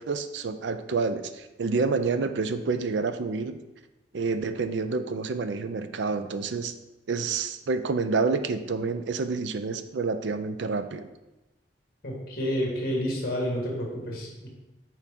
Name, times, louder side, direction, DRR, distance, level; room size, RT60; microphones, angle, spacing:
voice 1, 0.0-3.6 4.1-6.7 7.1-11.1, right 4 dB, 75° right, 10 dB, 0.5 m, -28 dB
voice 2, 12.0-14.5, equal, 55° left, -1 dB, 1.6 m, -29 dB
6.9 x 4.6 x 3.6 m, 1.0 s
head